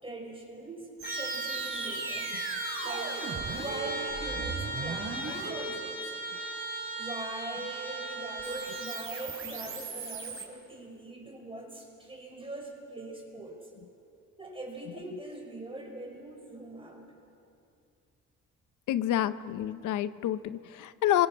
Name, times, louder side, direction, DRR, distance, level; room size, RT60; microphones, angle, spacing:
voice 1, 0.0-2.3 2.8-3.2 3.5-6.1 6.9-13.7 14.4-17.1, right 2 dB, 20° right, 0 dB, 5.5 m, -42 dB
Trumpet, 1.0-9.1, right 2 dB, 30° left, 6.6 m, -37 dB
sound 1, 1.0-10.5, right 4 dB, 45° right, 4.7 m, -39 dB
voice 2, 18.9-21.3, left 12 dB, 80° left, 13 dB, 0.8 m, -28 dB
29.5 x 24.5 x 6.2 m, 2.6 s
cardioid pair, 90°, 30 cm